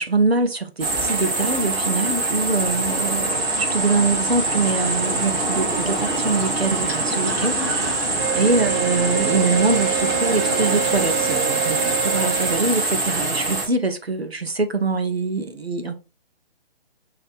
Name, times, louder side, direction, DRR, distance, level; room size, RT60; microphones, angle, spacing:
voice 1, 0.0-7.6 8.3-15.9, right 3 dB, 90° right, 0.9 m, -24 dB
sound 1, 0.8-13.7, right 2 dB, 10° right, 0.8 m, -24 dB
sound 2, 2.4-12.0, left 2 dB, 30° right, 1.8 m, -37 dB
Wind instrument woodwind instrument, 8.2-12.6, right 15 dB, 55° right, 1.0 m, -27 dB
5.1 x 2.8 x 2.6 m
figure-of-eight pair, 130°, 30 cm